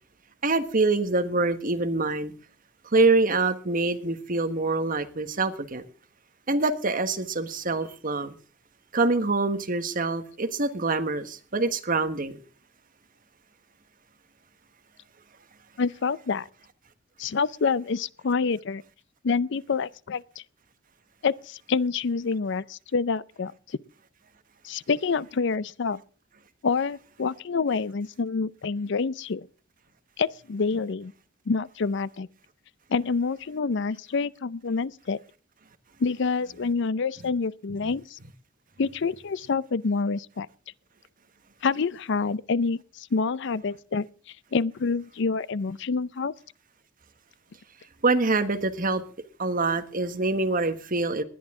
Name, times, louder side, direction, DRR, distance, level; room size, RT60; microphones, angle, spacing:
voice 1, 0.4-2.3 2.9-5.8 6.5-8.3 8.9-12.4 48.0-49.0 49.4-51.2, right 3 dB, 45° right, 1.4 m, -25 dB
voice 2, 15.8-16.5 17.2-18.8 19.2-20.4 21.2-23.5 24.6-26.0 26.6-29.5 30.2-31.1 31.5-32.3 32.9-35.2 36.0-38.2 38.8-40.5 41.6-44.1 44.5-46.3, left 4 dB, 65° left, 0.5 m, -27 dB
19.5 x 11.0 x 3.7 m
head